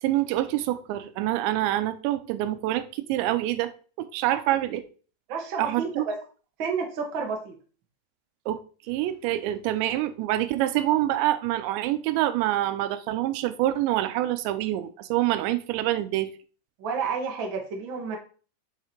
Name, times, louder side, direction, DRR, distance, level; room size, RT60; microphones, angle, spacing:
voice 1, 0.0-3.7 4.0-4.8 5.6-6.1 8.5-8.6 8.9-16.3, right 14 dB, 85° right, 11 dB, 3.0 m, -26 dB
voice 2, 5.3-6.1 6.6-7.5 16.8-18.2, right 5 dB, 60° right, 1 dB, 1.2 m, -30 dB
7.3 x 5.9 x 4.5 m, 0.39 s
omnidirectional pair, 5.0 m